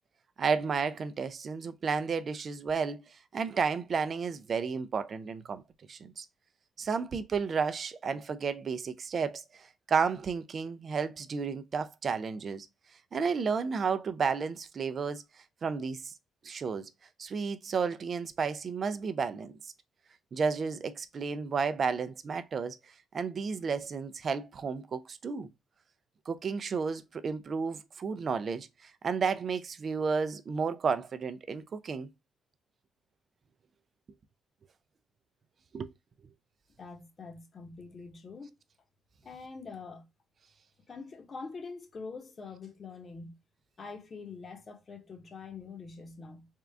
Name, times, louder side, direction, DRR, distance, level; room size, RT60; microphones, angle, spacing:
voice 1, 0.4-5.6 5.9-6.3 6.8-12.7 13.1-15.2 15.6-16.1 16.4-16.9 17.2-19.5 20.3-22.8 23.1-25.5 26.3-32.1 35.7-35.9, right 5 dB, 50° right, 0.5 m, -32 dB
voice 2, 36.8-38.5 39.2-40.0 40.9-43.3 43.8-46.5, left 4 dB, 40° left, 1.0 m, -44 dB
3.6 x 2.4 x 3.3 m
cardioid pair, 90°, 0 cm